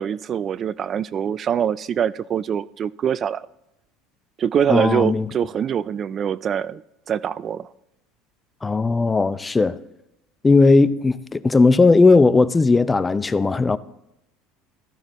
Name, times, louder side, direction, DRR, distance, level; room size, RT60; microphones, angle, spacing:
voice 1, 0.0-3.5 4.4-6.8 7.1-7.7, right 8 dB, 40° right, 0.3 m, -24 dB
voice 2, 4.7-5.3 8.6-9.8 10.4-13.8, left 3 dB, 20° left, 0.5 m, -17 dB
15.0 x 13.5 x 3.0 m
hypercardioid pair, 85°, 0 cm